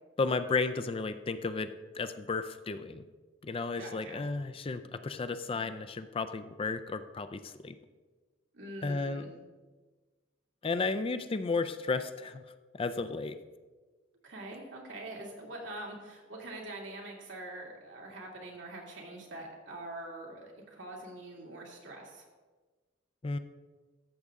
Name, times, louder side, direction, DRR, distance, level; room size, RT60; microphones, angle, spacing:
voice 1, 0.2-3.0 3.4-7.7 8.8-9.3 10.6-12.4 12.7-13.4 23.2-23.4, left 4 dB, 30° left, 11 dB, 0.4 m, -33 dB
voice 2, 3.8-4.2 8.5-9.3 14.2-22.2, right 2 dB, 80° right, -1 dB, 2.3 m, -44 dB
13.5 x 6.5 x 3.6 m, 1.3 s
head